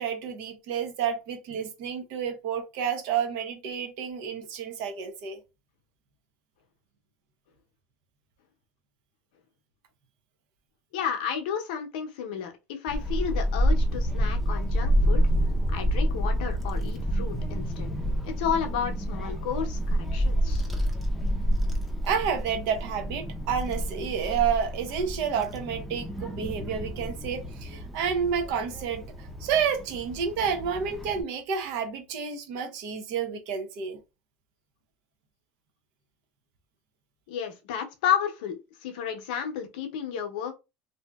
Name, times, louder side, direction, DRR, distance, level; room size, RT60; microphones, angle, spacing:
voice 1, 0.0-5.4 22.0-34.0, right 7 dB, 70° right, 0.7 m, -30 dB
voice 2, 10.9-15.2 15.7-17.9 18.2-20.6 37.3-40.6, left 8 dB, 85° left, 0.7 m, -32 dB
Child speech kid speaking / Wind, 12.9-31.2, equal, ahead, 0.6 m, -28 dB
2.7 x 2.6 x 2.2 m
supercardioid pair, 115°, 4 cm